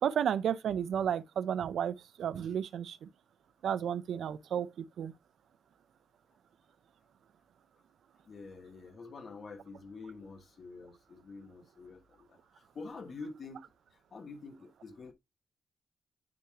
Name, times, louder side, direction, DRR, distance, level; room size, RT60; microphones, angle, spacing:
voice 1, 0.0-3.1 3.6-5.1, right 9 dB, 85° right, 0.5 m, -32 dB
voice 2, 8.2-13.6 14.1-15.1, left 4 dB, 55° left, 1.4 m, -47 dB
9.4 x 3.2 x 3.5 m
cardioid pair, 105°, 0 cm